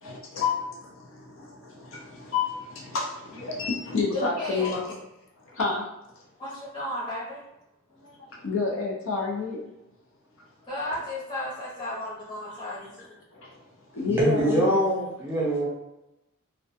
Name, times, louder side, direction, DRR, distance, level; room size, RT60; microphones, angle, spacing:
voice 1, 0.0-5.0 5.4-5.9 8.0-9.6 13.0-13.1 13.3-14.8, left 4 dB, 70° left, -2 dB, 0.5 m, -30 dB
voice 2, 4.1-4.7 6.4-7.4 10.6-13.1, left 1 dB, 20° left, -8 dB, 0.8 m, -33 dB
voice 3, 14.1-15.7, equal, 10° right, -6 dB, 0.5 m, -23 dB
2.3 x 2.2 x 2.6 m, 0.89 s
head